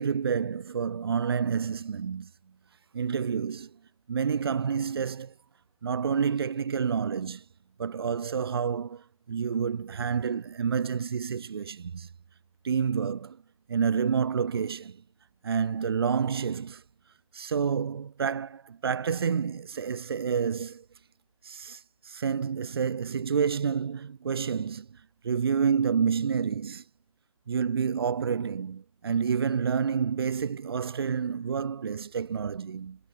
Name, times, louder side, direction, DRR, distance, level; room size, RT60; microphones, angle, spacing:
voice 1, 0.0-2.3 2.9-3.7 4.1-5.3 5.8-7.4 7.8-12.1 12.6-13.4 13.7-15.0 15.4-16.8 17.3-20.8 21.4-24.9 25.2-26.8 27.5-33.0, right 6 dB, 40° right, 7.2 m, -29 dB
figure-of-eight pair, 165°, 19 cm